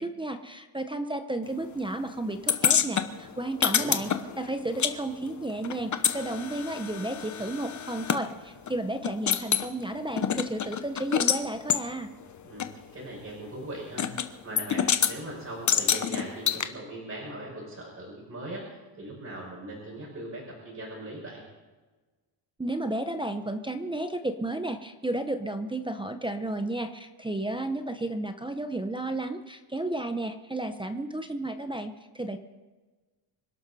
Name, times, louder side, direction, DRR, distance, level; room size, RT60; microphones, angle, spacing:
voice 1, 0.0-12.1 22.6-32.4, right 2 dB, 10° right, 7 dB, 0.7 m, -33 dB
sound 1, 2.5-4.9 5.2-8.2 8.7-8.8 9.0-9.7 10.2-11.4 11.7-11.8 12.6-12.7 14.0-14.3 14.6-15.1 15.7-16.6, left 8 dB, 35° left, 0.9 m, -26 dB
voice 2, 12.9-14.1 14.4-21.4, right 1 dB, 30° right, -5 dB, 5.4 m, -40 dB
26.0 x 12.0 x 4.1 m, 1.3 s
cardioid pair, 145°, 49 cm